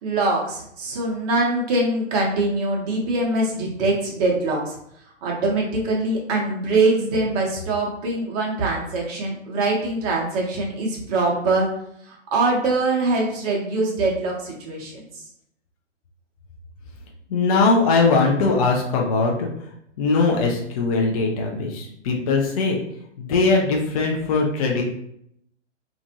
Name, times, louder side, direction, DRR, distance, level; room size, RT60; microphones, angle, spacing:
voice 1, 0.0-4.7 5.2-11.7 12.1-15.1, right 2 dB, 30° right, -1 dB, 0.8 m, -23 dB
voice 2, 17.3-19.5 20.0-22.8 23.2-24.8, left 3 dB, 30° left, 0 dB, 0.4 m, -20 dB
2.5 x 2.4 x 2.7 m, 0.73 s
figure-of-eight pair, 120°, 37 cm